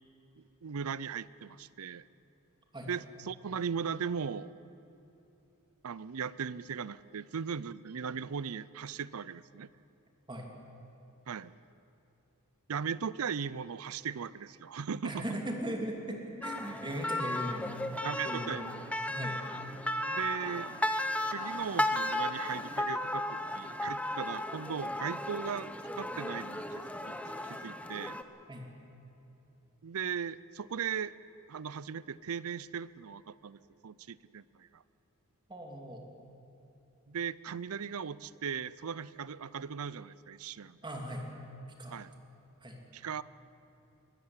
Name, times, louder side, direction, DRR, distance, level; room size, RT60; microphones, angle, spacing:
voice 1, 0.4-2.0 2.8-4.5 5.8-9.7 11.3-11.5 12.7-15.2 18.0-18.8 20.1-20.7 21.3-26.6 27.1-27.2 27.4-28.2 29.8-31.1 31.5-34.8 37.1-40.8 41.9-42.1 42.9-43.2, right 6 dB, 70° right, 19 dB, 0.5 m, -38 dB
voice 2, 15.0-17.8 18.3-18.7 19.1-19.4 28.5-28.7 35.5-36.0 40.8-41.3 41.8-42.0 42.6-42.8, equal, 20° right, 2 dB, 2.8 m, -38 dB
sound 1, 16.4-28.2, left 1 dB, 5° left, 0.9 m, -35 dB
Bowed string instrument, 19.5-24.3, equal, 80° left, 7.1 m, -57 dB
22.5 x 13.5 x 9.7 m, 2.9 s
head